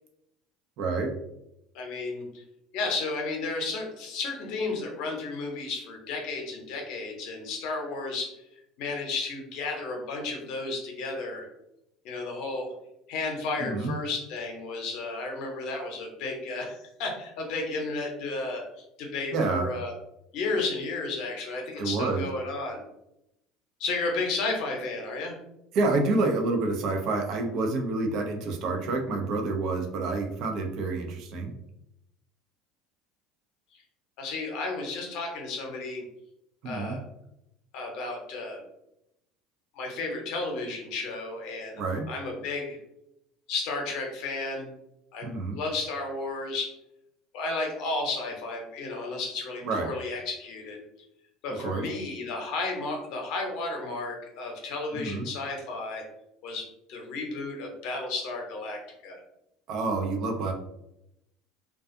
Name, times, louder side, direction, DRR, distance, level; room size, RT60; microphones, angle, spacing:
voice 1, 0.8-1.1 13.6-13.9 19.3-19.7 21.8-22.2 25.7-31.5 36.6-37.0 41.8-42.1 45.2-45.6 49.6-49.9 51.6-51.9 54.9-55.3 59.7-60.5, right 3 dB, 60° right, 3 dB, 0.5 m, -28 dB
voice 2, 1.7-2.4 2.7-8.4 8.8-11.5 12.0-12.7 13.1-18.6 19.0-19.9 20.3-22.8 23.8-25.3 34.2-36.0 36.6-37.0 37.7-38.6 39.7-41.8 42.1-42.8 43.5-44.7 45.1-45.3 45.5-46.7 47.3-50.8 51.4-56.0 56.4-59.2, left 3 dB, 65° left, 1 dB, 0.7 m, -33 dB
2.4 x 2.3 x 2.5 m, 0.83 s
hypercardioid pair, 75°, 0 cm